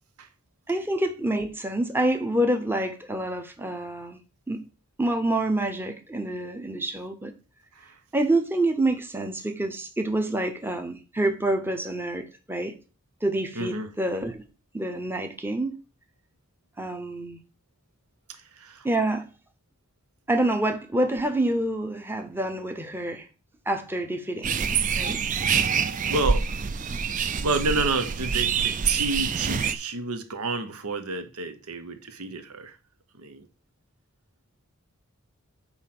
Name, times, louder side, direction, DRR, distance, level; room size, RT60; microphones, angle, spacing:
voice 1, 0.7-4.2 4.5-4.7 5.0-7.3 8.1-12.8 13.2-14.4 14.7-15.8 16.8-17.4 18.8-19.3 20.3-23.3 23.7-25.2 26.9-27.0, right 1 dB, 10° right, 0.7 m, -27 dB
voice 2, 13.5-13.9 18.3-18.9 26.1-26.5 27.4-32.8 33.2-33.5, right 3 dB, 90° right, 1.0 m, -30 dB
sound 1, 24.4-29.8, right 6 dB, 35° right, 0.4 m, -26 dB
8.1 x 3.2 x 5.9 m
head